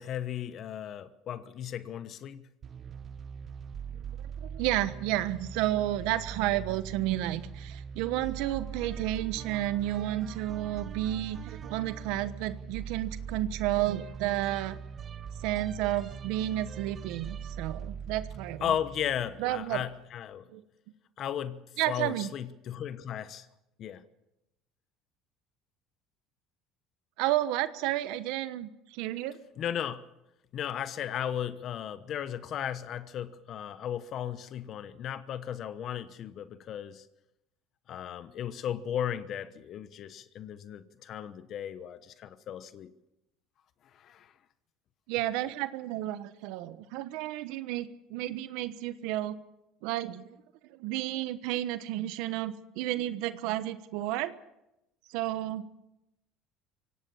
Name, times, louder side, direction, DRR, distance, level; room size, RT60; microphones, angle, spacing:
voice 1, 0.0-2.4 18.6-20.5 21.2-23.5 23.8-24.0 29.6-30.0 30.5-37.0 37.9-42.9 43.9-44.3, left 10 dB, 50° left, 1.1 m, -35 dB
sound 1, 2.6-19.9, right 7 dB, 40° right, 0.8 m, -41 dB
voice 2, 4.1-14.8 15.4-18.7 19.4-19.8 20.5-20.6 21.8-22.3 27.2-29.3 45.1-49.4 49.8-50.4 50.7-54.3 55.1-55.6, right 14 dB, 75° right, 1.1 m, -31 dB
24.0 x 18.0 x 7.1 m
supercardioid pair, 110°, 0 cm